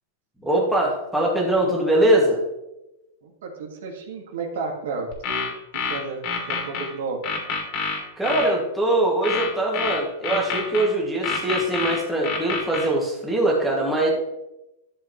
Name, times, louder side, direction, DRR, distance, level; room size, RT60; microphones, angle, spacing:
voice 1, 0.4-2.4 8.2-14.1, right 1 dB, ahead, -4 dB, 2.1 m, -22 dB
voice 2, 3.2-5.5 5.7-7.2, right 4 dB, 75° right, 2 dB, 1.9 m, -32 dB
sound 1, 5.1-6.9 7.2-8.5 9.2-10.9 11.2-12.9, left 5 dB, 45° left, 2.7 m, -27 dB
12.5 x 6.8 x 3.1 m, 0.96 s
supercardioid pair, 140°, 0 cm